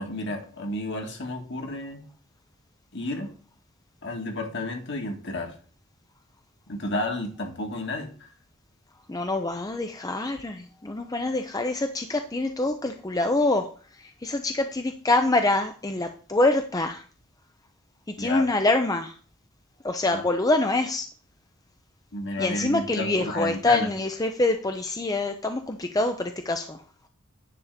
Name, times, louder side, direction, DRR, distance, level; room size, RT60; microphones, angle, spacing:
voice 1, 0.0-2.0 2.9-3.3 4.0-5.5 6.7-8.3 18.2-18.5 20.1-20.2 22.1-23.9, left 2 dB, 55° left, 3 dB, 1.8 m, -31 dB
voice 2, 9.1-13.7 14.0-17.0 18.2-19.1 19.8-21.1 22.4-26.8, left 2 dB, 15° left, 6 dB, 0.5 m, -25 dB
9.8 x 3.6 x 6.6 m, 0.41 s
head